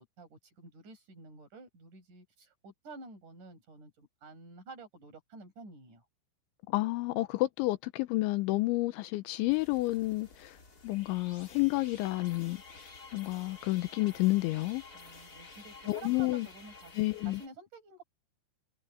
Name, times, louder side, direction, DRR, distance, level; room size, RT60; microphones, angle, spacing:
voice 1, 0.0-6.0 14.9-18.0, right 3 dB, 40° right, 7.9 m, -51 dB
voice 2, 6.7-10.6 10.8-12.6 13.1-14.8 15.9-16.5 17.0-17.4, left 20 dB, 80° left, 2.8 m, -30 dB
sound 1, 9.5-17.5, left 3 dB, 20° left, 3.1 m, -52 dB
omnidirectional pair, 5.9 m